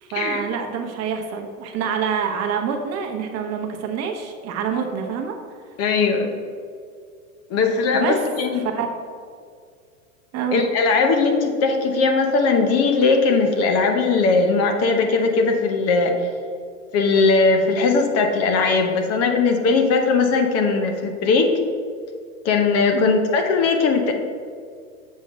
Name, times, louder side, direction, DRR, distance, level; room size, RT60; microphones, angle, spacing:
voice 1, 0.0-5.4 7.9-8.2 8.5-8.9 10.3-10.6 22.9-23.1, right 7 dB, 35° right, 3 dB, 1.0 m, -26 dB
voice 2, 5.8-6.3 7.5-8.7 10.5-16.2 16.9-21.5 22.4-24.1, left 4 dB, 35° left, 5 dB, 0.9 m, -19 dB
7.5 x 3.7 x 6.2 m, 2.1 s
hypercardioid pair, 115°, 42 cm